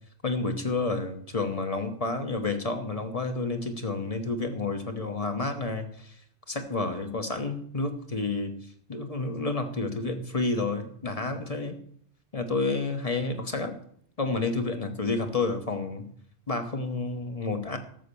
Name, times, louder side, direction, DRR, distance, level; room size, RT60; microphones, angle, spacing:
voice 1, 0.2-6.1 6.5-8.5 8.9-11.8 12.3-13.7 14.2-16.1 16.5-17.8, left 3 dB, 35° left, 6 dB, 1.1 m, -30 dB
13.0 x 6.6 x 6.8 m, 0.64 s
omnidirectional pair, 1.1 m